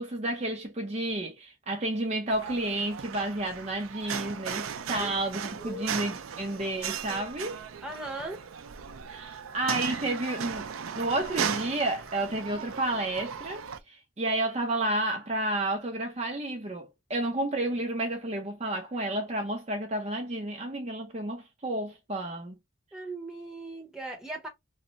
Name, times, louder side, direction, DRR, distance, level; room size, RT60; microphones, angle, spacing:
voice 1, 0.0-7.6 9.1-22.6, right 1 dB, 35° right, 0.7 m, -31 dB
sound 1, 2.3-13.8, right 7 dB, 85° right, 0.5 m, -37 dB
voice 2, 7.8-8.4 22.9-24.5, right 2 dB, 5° right, 0.9 m, -38 dB
3.1 x 2.2 x 3.7 m
head